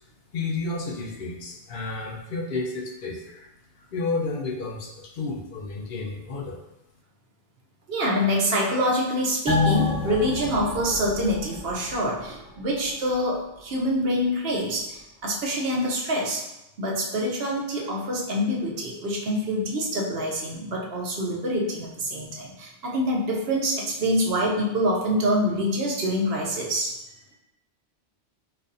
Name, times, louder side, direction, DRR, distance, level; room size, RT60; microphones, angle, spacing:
voice 1, 0.3-3.5 3.8-6.6, left 3 dB, 55° left, 1 dB, 0.6 m, -31 dB
voice 2, 7.9-16.4 16.8-26.9, equal, 60° right, -2 dB, 0.9 m, -26 dB
sound 1, 9.5-12.4 12.7-12.8, left 4 dB, 10° right, 0.4 m, -27 dB
4.1 x 2.5 x 2.6 m, 0.92 s
omnidirectional pair, 1.2 m